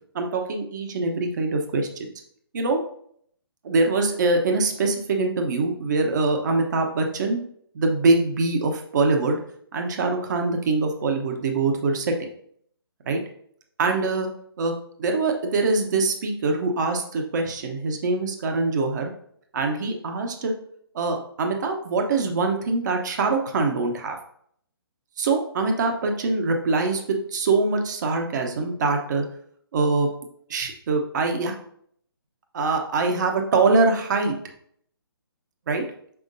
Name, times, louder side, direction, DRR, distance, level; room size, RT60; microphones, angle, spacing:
voice 1, 0.1-2.1 2.5-2.8 3.6-7.4 7.7-9.4 9.7-12.3 13.1-13.2 13.8-14.3 14.6-14.7 15.0-19.1 19.5-20.5 20.9-24.2 25.2-29.2 29.7-30.1 30.5-31.5 32.5-34.3 35.7-35.8, right 3 dB, 50° right, 3 dB, 1.0 m, -23 dB
6.2 x 5.8 x 2.6 m, 0.65 s
hypercardioid pair, 150°, 13 cm